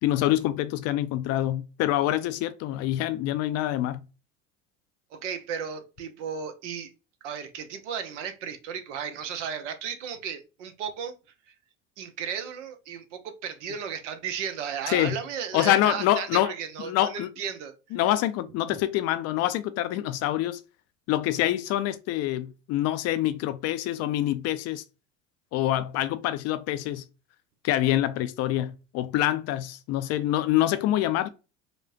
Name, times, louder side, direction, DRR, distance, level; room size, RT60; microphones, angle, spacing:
voice 1, 0.0-4.0 14.9-15.2 15.5-16.5 16.8-17.3 17.9-20.6 21.1-24.8 25.5-27.0 27.6-31.3, left 13 dB, 45° left, 0.4 m, -26 dB
voice 2, 5.1-6.9 7.2-11.1 12.0-17.7, right 7 dB, 70° right, 0.8 m, -34 dB
5.0 x 2.1 x 2.5 m
hypercardioid pair, 80°, 37 cm